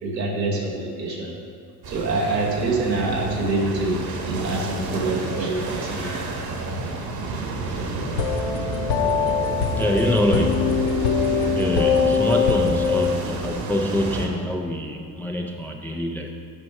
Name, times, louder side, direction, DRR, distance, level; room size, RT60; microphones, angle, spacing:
voice 1, 0.0-1.3 1.9-6.6, right 2 dB, 80° right, -2 dB, 1.2 m, -26 dB
sound 1, 1.8-14.3, right 3 dB, 50° right, 1.3 m, -30 dB
sound 2, 8.1-13.1, left 6 dB, 65° left, 0.9 m, -22 dB
voice 2, 9.6-11.2 11.5-16.3, left 1 dB, 5° left, 1 dB, 0.4 m, -25 dB
7.2 x 5.1 x 5.8 m, 2.2 s
figure-of-eight pair, 50°, 49 cm